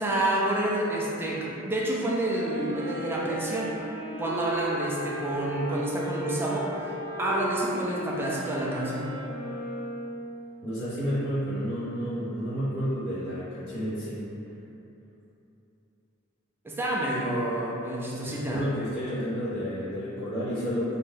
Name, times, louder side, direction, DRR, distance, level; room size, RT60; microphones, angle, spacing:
voice 1, 0.0-3.8 4.2-9.1 16.6-18.7, right 1 dB, 10° right, -5 dB, 0.3 m, -29 dB
Wind instrument woodwind instrument, 2.2-10.5, right 1 dB, 85° right, 0.5 m, -35 dB
voice 2, 10.6-14.2 18.2-21.0, equal, 50° left, -13 dB, 1.3 m, -31 dB
2.6 x 2.1 x 3.3 m, 3.0 s
head